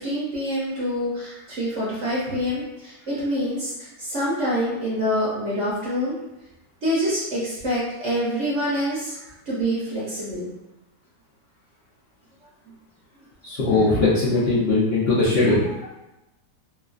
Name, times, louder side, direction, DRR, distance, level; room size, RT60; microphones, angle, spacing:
voice 1, 0.0-3.7 4.0-6.2 6.8-10.5, equal, 55° right, -7 dB, 0.9 m, -26 dB
voice 2, 13.4-15.6, left 2 dB, 75° left, -9 dB, 0.5 m, -20 dB
3.0 x 2.4 x 2.4 m, 0.98 s
omnidirectional pair, 1.9 m